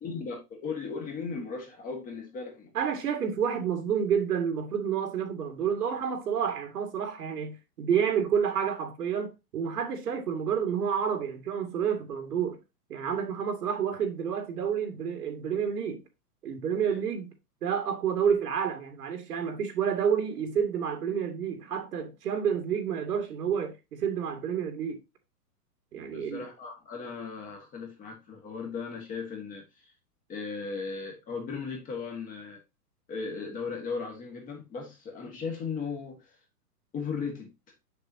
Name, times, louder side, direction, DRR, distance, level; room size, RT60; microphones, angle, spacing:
voice 1, 0.0-2.7 16.8-17.0 26.1-29.9 30.3-32.6 33.1-36.4 36.9-37.5, left 5 dB, 15° left, 1.6 m, -37 dB
voice 2, 2.7-12.6 12.9-16.0 16.4-17.3 17.6-25.0 25.9-26.4, right 7 dB, 70° right, 2.2 m, -29 dB
7.0 x 6.8 x 2.8 m
hypercardioid pair, 150°, 48 cm